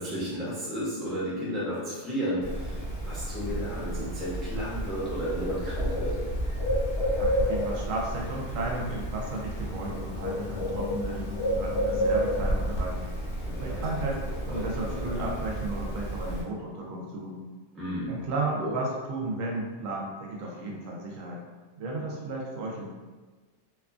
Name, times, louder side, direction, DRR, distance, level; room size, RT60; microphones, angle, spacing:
voice 1, 0.0-6.2 13.4-13.8 14.5-15.2 17.8-18.2 18.6-18.7, equal, ahead, -8 dB, 0.4 m, -33 dB
Bird, 2.4-16.4, equal, 65° left, 0.9 m, -30 dB
voice 2, 7.2-11.3 11.5-13.0 13.6-17.4 18.1-21.4 21.8-22.9, right 2 dB, 85° right, -1 dB, 1.0 m, -34 dB
2.8 x 2.3 x 2.4 m, 1.3 s
omnidirectional pair, 1.3 m